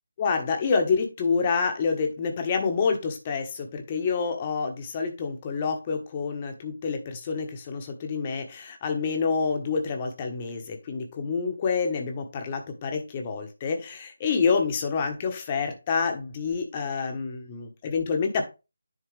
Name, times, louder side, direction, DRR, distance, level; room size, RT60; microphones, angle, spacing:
voice 1, 0.2-18.5, left 5 dB, 25° left, 4 dB, 1.3 m, -27 dB
10.5 x 4.2 x 3.4 m, 0.28 s
figure-of-eight pair, 155°, 0 cm